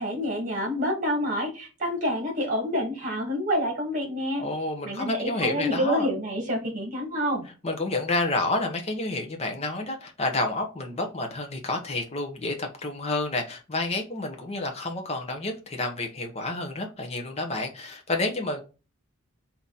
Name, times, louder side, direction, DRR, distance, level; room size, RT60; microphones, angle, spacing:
voice 1, 0.0-4.4 4.8-7.5, equal, 35° right, 1.7 m, -28 dB
voice 2, 4.4-6.1 7.6-18.6, left 2 dB, 30° left, 0.8 m, -29 dB
3.9 x 2.9 x 3.9 m
head